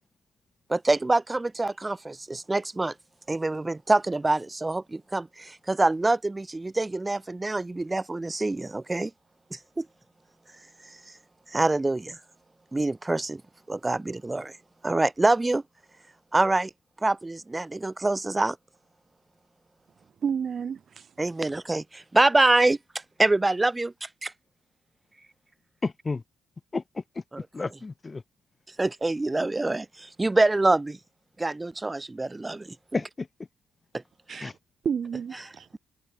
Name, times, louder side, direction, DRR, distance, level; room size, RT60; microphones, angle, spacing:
voice 1, 0.7-2.9 3.3-9.1 9.5-9.9 11.5-12.2 12.7-13.4 13.7-14.6 14.8-15.6 16.3-16.7 17.0-18.6 21.2-22.8 23.2-24.3 28.8-31.0 31.4-32.8 33.9-34.0 34.3-34.5, right 2 dB, 20° right, 0.5 m, -25 dB
voice 2, 20.2-21.1 34.3-34.5 34.8-35.8, right 7 dB, 55° right, 1.1 m, -30 dB
voice 3, 25.8-26.2 26.7-28.2 32.9-33.3 34.4-34.5, left 3 dB, 30° left, 1.3 m, -32 dB
open air
hypercardioid pair, 45°, 0 cm